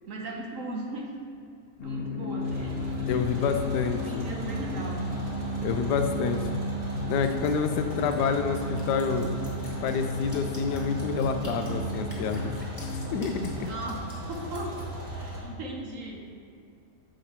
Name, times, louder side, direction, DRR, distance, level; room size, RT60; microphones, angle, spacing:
voice 1, 0.1-1.2 1.8-3.7 4.0-5.0 13.7-14.8 15.1-16.2, right 2 dB, 60° right, 0 dB, 1.1 m, -38 dB
sound 1, 1.8-13.6, left 1 dB, 60° left, 0.6 m, -34 dB
sound 2, 2.4-15.4, equal, 30° right, 1.4 m, -38 dB
voice 2, 3.1-4.2 5.6-6.4 7.1-9.3 9.8-12.5 12.8-13.7, left 6 dB, 80° left, 7 dB, 1.1 m, -28 dB
Drip, 7.2-14.8, left 1 dB, 20° left, 1.4 m, -49 dB
7.7 x 5.1 x 4.2 m, 2.5 s
omnidirectional pair, 1.8 m